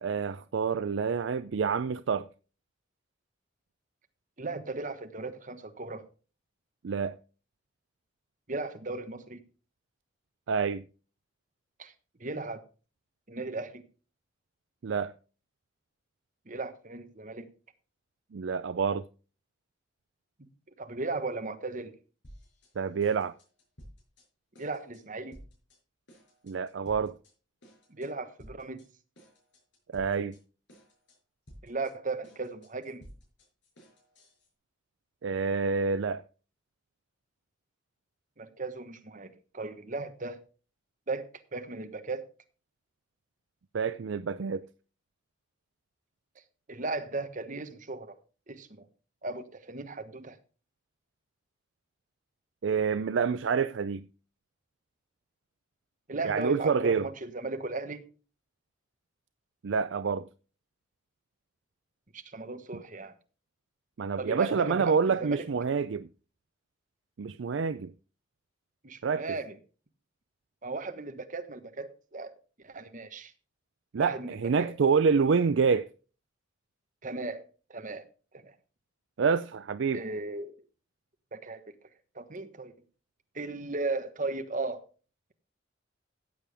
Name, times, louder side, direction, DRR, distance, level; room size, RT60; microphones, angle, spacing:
voice 1, 0.0-2.3 6.8-7.2 10.5-10.9 14.8-15.1 18.3-19.0 22.8-23.3 26.4-27.2 29.9-30.4 35.2-36.2 43.7-44.6 52.6-54.1 56.2-57.1 59.6-60.3 64.0-66.1 67.2-67.9 69.0-69.2 73.9-75.9 79.2-80.0, right 5 dB, 70° right, 0.4 m, -27 dB
voice 2, 4.4-6.0 8.5-9.4 11.8-11.9 12.2-12.6 13.3-13.8 16.5-17.5 20.4-20.5 20.8-21.9 24.6-25.4 27.9-28.8 31.6-33.0 38.4-40.4 41.1-42.3 46.7-48.1 48.5-48.9 49.2-50.4 56.1-58.0 62.1-63.1 64.2-65.5 68.8-69.6 70.6-72.3 72.6-73.3 74.0-74.7 77.0-77.4 77.7-78.1 78.3-78.5 79.9-80.5 81.3-81.6 82.1-82.7 83.3-84.8, right 3 dB, 40° right, 1.3 m, -36 dB
sound 1, 22.2-22.7 23.0-24.3 24.5-25.0 25.3-25.8 26.1-27.3 27.6-28.1 28.4-28.9 29.2-30.4 30.7-31.2 31.5-34.5, equal, 65° left, 5.9 m, -54 dB
14.5 x 8.5 x 3.4 m
head